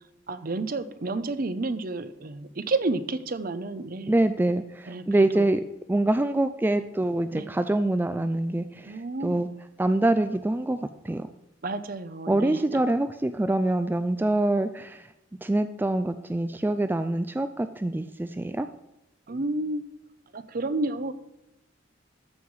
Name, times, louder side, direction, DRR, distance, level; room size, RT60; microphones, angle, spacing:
voice 1, 0.3-4.1 4.9-5.4 7.3-7.4 8.9-9.4 11.6-12.8 19.3-19.8 20.3-21.1, right 2 dB, 50° right, 12 dB, 0.7 m, -30 dB
voice 2, 4.1-5.6 5.9-9.5 9.8-11.3 12.3-15.1 15.4-18.7, right 1 dB, 10° right, 10 dB, 0.3 m, -25 dB
13.5 x 5.6 x 4.7 m, 0.93 s
head